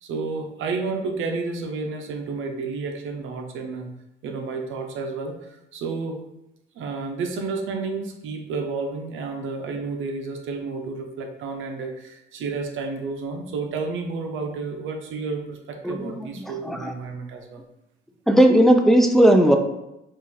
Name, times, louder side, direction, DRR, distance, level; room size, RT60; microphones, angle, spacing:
voice 1, 0.0-3.9 4.2-6.2 6.8-17.6, right 4 dB, 80° right, 3 dB, 0.7 m, -31 dB
voice 2, 15.8-16.3 16.7-16.8 18.3-19.6, right 1 dB, ahead, 4 dB, 0.5 m, -16 dB
5.4 x 2.5 x 3.3 m, 0.88 s
cardioid pair, 90°, 20 cm